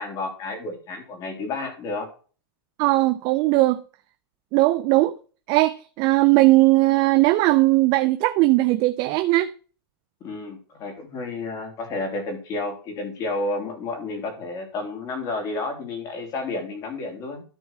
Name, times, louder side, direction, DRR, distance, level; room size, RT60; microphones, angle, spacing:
voice 1, 0.0-2.1 10.2-17.4, left 2 dB, 30° left, 3.4 m, -31 dB
voice 2, 2.8-3.8 4.5-5.1 5.5-9.5, right 19 dB, 35° right, 0.5 m, -19 dB
13.0 x 4.6 x 4.3 m
supercardioid pair, 155°, 12 cm